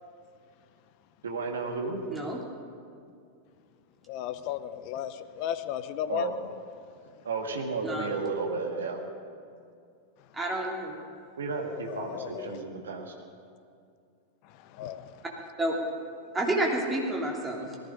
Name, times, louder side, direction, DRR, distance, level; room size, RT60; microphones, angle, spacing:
voice 1, 1.2-2.0 6.1-6.3 7.3-9.0 11.4-13.1, right 4 dB, 65° right, 3 dB, 1.8 m, -33 dB
voice 2, 4.1-6.3 11.9-12.6 14.5-15.1, left 11 dB, 45° left, 13 dB, 0.7 m, -35 dB
voice 3, 10.3-11.0 15.6-15.8 16.3-17.7, right 1 dB, 15° right, -2 dB, 3.0 m, -29 dB
19.0 x 15.0 x 5.2 m, 2.4 s
figure-of-eight pair, 90°, 0 cm